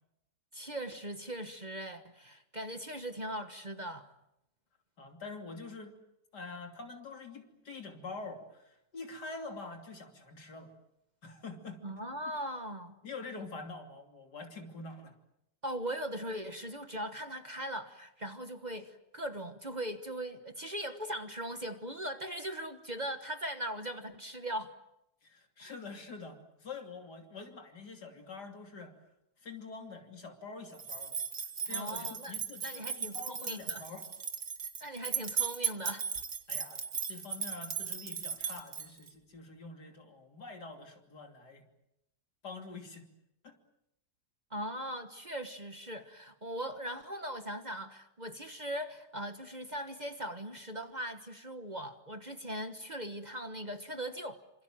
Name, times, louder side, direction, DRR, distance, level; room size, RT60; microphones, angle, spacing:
voice 1, 0.5-4.1 11.8-12.9 15.6-24.7 25.6-25.7 31.7-32.4 32.6-33.8 34.8-36.1 44.5-54.4, right 1 dB, 30° right, 1.3 m, -40 dB
voice 2, 5.0-6.0 6.3-10.7 11.2-11.8 13.0-15.2 25.2-28.9 29.4-34.1 36.5-41.7 42.4-43.1 43.4-43.6, left 3 dB, 80° left, 3.6 m, -46 dB
sound 1, 30.8-39.1, right 7 dB, 50° right, 1.9 m, -37 dB
27.0 x 26.5 x 7.6 m
omnidirectional pair, 1.7 m